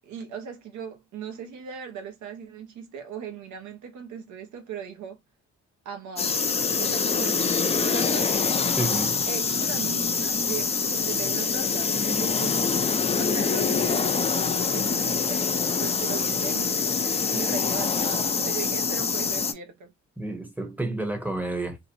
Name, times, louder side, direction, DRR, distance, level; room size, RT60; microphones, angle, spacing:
voice 1, 0.0-5.2 5.8-6.4 6.8-8.3 8.8-12.7 13.2-15.5 15.8-16.8 17.3-19.9, right 7 dB, 70° right, 0.7 m, -38 dB
sound 1, 6.2-19.5, left 5 dB, 20° left, 0.4 m, -25 dB
voice 2, 8.8-9.2 20.2-21.8, right 2 dB, 5° right, 0.8 m, -30 dB
2.7 x 2.0 x 2.7 m
cardioid pair, 90°, 30 cm